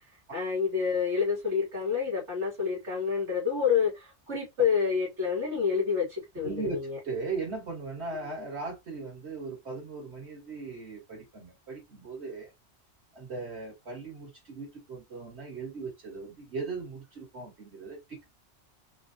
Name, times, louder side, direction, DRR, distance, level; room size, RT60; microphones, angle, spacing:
voice 1, 0.3-7.0, left 6 dB, 85° right, 2.4 m, -28 dB
voice 2, 6.4-6.8 7.0-12.5 13.1-18.2, right 4 dB, 65° right, 2.5 m, -38 dB
5.2 x 2.6 x 2.7 m
omnidirectional pair, 1.2 m